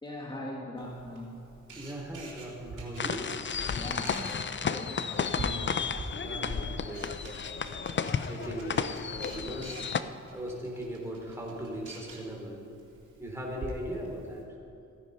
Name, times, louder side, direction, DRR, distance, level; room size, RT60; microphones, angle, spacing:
voice 1, 0.0-1.4 3.7-5.7, left 1 dB, 15° left, -2 dB, 1.9 m, -40 dB
Camera, 0.8-14.4, right 2 dB, 80° right, 2.9 m, -46 dB
voice 2, 1.7-3.3 6.2-7.5 8.3-9.8 10.3-12.6 13.2-14.4, right 1 dB, 10° right, -2 dB, 3.1 m, -39 dB
sound 1, 3.0-10.0, left 6 dB, 40° left, 0.6 m, -33 dB
15.5 x 9.4 x 5.5 m, 2.6 s
cardioid pair, 70°, 30 cm